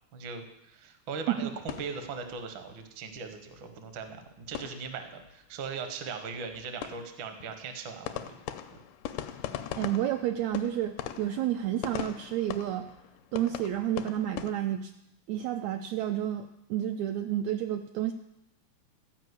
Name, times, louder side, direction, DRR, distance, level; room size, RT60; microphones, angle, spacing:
voice 1, 0.1-8.4, right 5 dB, 65° right, 7 dB, 1.2 m, -39 dB
sound 1, 1.4-2.8 3.1-3.2 3.5-3.6 3.9-5.4 5.6-5.8 6.0-14.5, left 11 dB, 85° left, 2.2 m, -41 dB
voice 2, 9.8-12.9 13.3-14.9 15.3-18.1, right 11 dB, 85° right, 5 dB, 1.5 m, -30 dB
14.0 x 5.2 x 8.0 m, 0.85 s
omnidirectional pair, 3.7 m